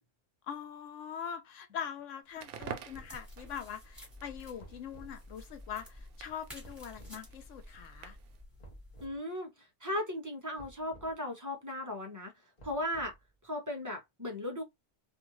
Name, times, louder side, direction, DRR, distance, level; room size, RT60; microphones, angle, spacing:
voice 1, 0.5-8.2, left 8 dB, 75° left, 0.9 m, -42 dB
Crackle, 2.3-8.4, right 8 dB, 70° right, 0.9 m, -50 dB
sound 1, 2.6-3.2 4.6-5.2 6.6-7.2 8.6-9.2 10.6-11.1 12.6-13.3, right 1 dB, 35° left, 0.8 m, -54 dB
sound 2, 2.9-9.0, left 1 dB, ahead, 1.3 m, -51 dB
voice 2, 9.0-12.3 12.6-13.1 13.4-14.6, left 1 dB, 20° right, 0.5 m, -37 dB
2.6 x 2.4 x 2.9 m
omnidirectional pair, 1.3 m